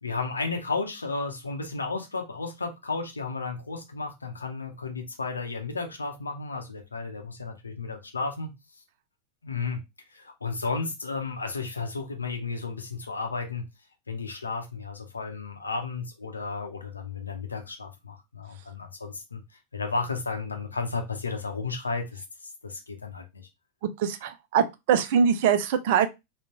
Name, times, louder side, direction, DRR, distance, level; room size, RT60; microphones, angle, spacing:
voice 1, 0.0-8.5 9.4-9.8 10.1-13.6 14.1-19.4 19.7-22.2 22.6-23.5, left 4 dB, 75° left, 0.6 m, -33 dB
voice 2, 24.0-26.1, right 7 dB, 50° right, 0.4 m, -23 dB
3.7 x 2.2 x 2.9 m
figure-of-eight pair, 90°, 0 cm